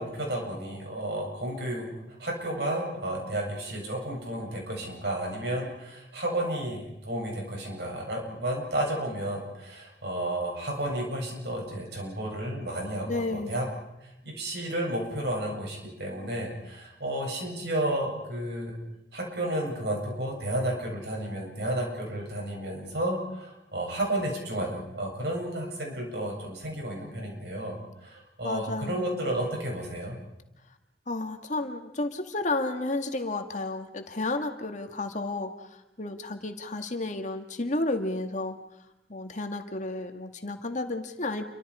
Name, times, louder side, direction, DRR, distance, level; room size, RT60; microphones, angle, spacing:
voice 1, 0.0-13.7 14.0-18.8 19.1-30.2, right 1 dB, 70° right, 0 dB, 7.9 m, -32 dB
voice 2, 13.1-13.6 28.4-29.1 31.1-38.6 39.1-41.4, left 2 dB, 45° left, 5 dB, 2.0 m, -32 dB
29.0 x 24.5 x 5.0 m, 0.89 s
head